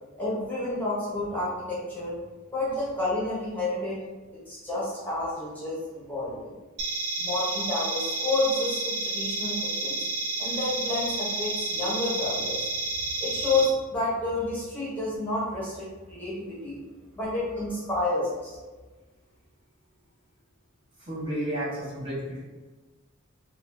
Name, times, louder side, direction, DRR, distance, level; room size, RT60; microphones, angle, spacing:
voice 1, 0.2-2.1 2.5-4.0 4.5-6.6 7.2-10.0 10.4-12.7 13.2-16.8 17.1-18.6, left 2 dB, 10° left, -8 dB, 0.9 m, -30 dB
sound 1, 6.8-13.6, right 2 dB, 80° right, 0.7 m, -30 dB
voice 2, 21.1-22.4, right 1 dB, 25° right, -8 dB, 0.9 m, -31 dB
4.1 x 2.4 x 2.6 m, 1.3 s
head